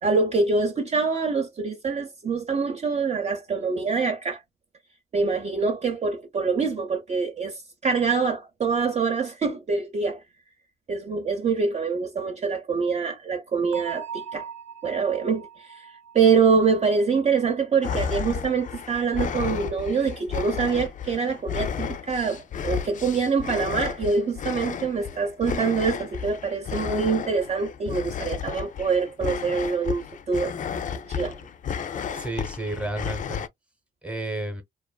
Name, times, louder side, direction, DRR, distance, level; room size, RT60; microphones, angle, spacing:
voice 1, 0.0-4.4 5.1-10.2 10.9-14.5 14.8-15.7 16.1-30.5 31.2-31.4, right 5 dB, 35° right, 0.6 m, -25 dB
Bell, 13.7-17.4, right 7 dB, 70° right, 0.7 m, -40 dB
sound 1, 17.8-33.5, left 8 dB, 40° left, 0.4 m, -32 dB
voice 2, 32.1-33.5 34.0-34.6, right 2 dB, 5° right, 0.9 m, -31 dB
2.5 x 2.4 x 2.2 m
cardioid pair, 90°, 20 cm